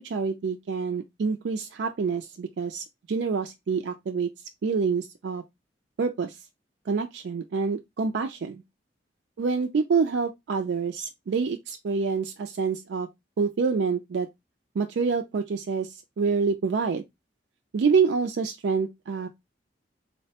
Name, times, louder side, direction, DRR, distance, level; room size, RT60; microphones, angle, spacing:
voice 1, 0.0-4.3 4.6-5.4 6.0-6.4 6.9-8.6 9.4-13.1 13.4-14.3 14.8-17.0 17.7-19.3, right 5 dB, 70° right, 0.4 m, -27 dB
3.8 x 2.1 x 2.7 m
head